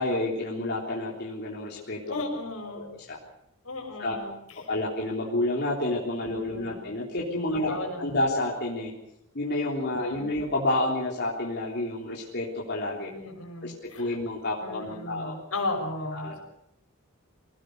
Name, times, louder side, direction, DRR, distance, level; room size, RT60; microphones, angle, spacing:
voice 1, 0.0-2.0 2.7-3.2 4.0-4.1 4.7-8.9 9.3-13.1 13.6-15.3 16.1-16.4, left 1 dB, 50° left, -3 dB, 3.7 m, -29 dB
voice 2, 2.1-2.9 3.6-4.7 6.3-6.9 7.5-8.2 10.0-10.4 13.1-14.2 14.6-16.4, left 2 dB, 75° left, 3 dB, 6.1 m, -36 dB
24.5 x 18.5 x 6.7 m, 0.81 s
head